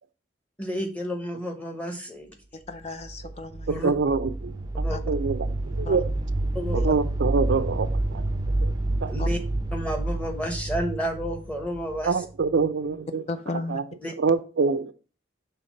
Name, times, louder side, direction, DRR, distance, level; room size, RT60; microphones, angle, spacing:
voice 1, 0.6-2.3 3.7-3.9 4.8-5.0 6.5-6.9 9.1-9.4 9.7-12.2 14.0-14.1, equal, 5° left, 4 dB, 1.0 m, -31 dB
voice 2, 2.5-3.7 4.9-5.0 5.9-6.0 6.7-6.9 9.2-9.3 13.3-13.8, left 3 dB, 35° left, 9 dB, 0.4 m, -34 dB
sound 1, 2.8-12.6, right 2 dB, 20° right, 0.5 m, -29 dB
voice 3, 3.7-6.1 6.7-8.3 8.6-8.7 9.0-9.1 12.0-13.2 13.7-13.8 14.2-14.9, right 4 dB, 75° right, 11 dB, 0.5 m, -26 dB
5.8 x 3.4 x 5.1 m, 0.37 s
head